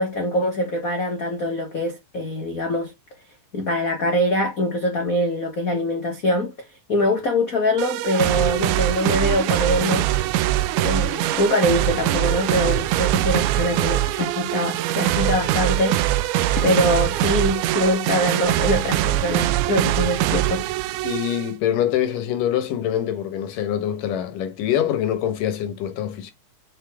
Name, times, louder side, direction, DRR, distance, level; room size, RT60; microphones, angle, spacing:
voice 1, 0.0-2.9 3.5-6.5 6.9-10.1 10.8-16.0 16.6-20.6, left 1 dB, 40° left, 1.3 m, -23 dB
sound 1, 7.8-21.5, right 14 dB, 80° right, 2.0 m, -22 dB
voice 2, 21.0-26.3, left 10 dB, 85° left, 2.9 m, -24 dB
6.6 x 4.4 x 3.5 m
omnidirectional pair, 3.7 m